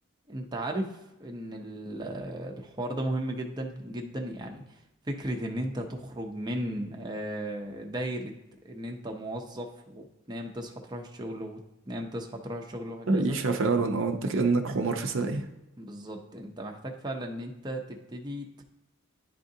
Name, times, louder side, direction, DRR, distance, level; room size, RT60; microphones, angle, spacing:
voice 1, 0.3-8.3 8.6-13.4 15.8-18.5, right 1 dB, 20° right, 2 dB, 0.6 m, -36 dB
voice 2, 13.1-15.4, right 3 dB, 60° right, 5 dB, 0.6 m, -26 dB
10.0 x 3.7 x 2.7 m, 0.93 s
head